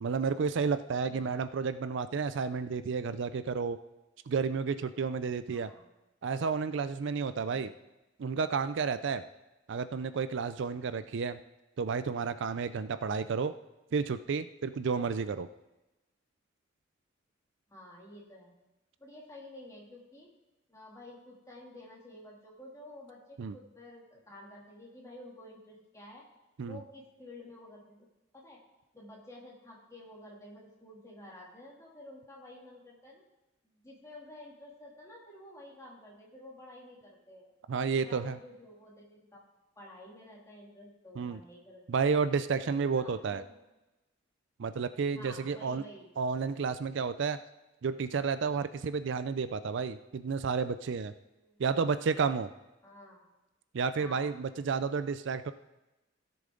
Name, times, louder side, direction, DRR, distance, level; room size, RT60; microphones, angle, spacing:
voice 1, 0.0-3.8 4.3-5.7 6.2-7.7 8.2-9.2 9.7-11.4 11.8-13.5 13.9-15.5 23.4-23.6 26.6-26.8 37.7-38.4 41.2-41.4 41.9-43.4 44.6-45.8 46.2-47.4 47.8-51.1 51.6-52.5 53.7-55.5, right 5 dB, 65° right, 12 dB, 0.4 m, -31 dB
voice 2, 5.5-5.9 7.5-7.8 17.7-18.5 19.0-20.3 20.7-26.2 26.6-28.1 28.3-28.6 28.9-33.2 33.6-37.5 38.0-39.4 39.8-42.1 42.5-43.6 45.1-46.1 51.4-51.6 52.8-53.2 54.0-54.3, left 1 dB, 15° left, -4 dB, 2.7 m, -51 dB
16.0 x 6.8 x 3.8 m, 0.99 s
head